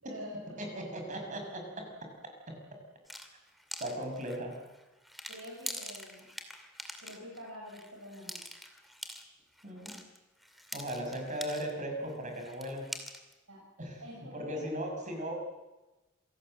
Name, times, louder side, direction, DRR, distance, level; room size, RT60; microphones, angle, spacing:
voice 1, 0.0-0.4 5.3-6.3 7.0-8.5 13.5-13.6 14.0-14.6 15.0-15.3, equal, 90° right, -3 dB, 7.2 m, -46 dB
voice 2, 0.6-1.9 2.2-2.6 3.8-4.6 9.6-10.0 10.7-12.9 13.8-14.0 14.3-15.3, equal, 40° right, 3 dB, 6.2 m, -38 dB
sound 1, 3.1-11.8 12.1-13.3, equal, ahead, 2.3 m, -45 dB
27.0 x 18.5 x 7.7 m, 1.1 s
head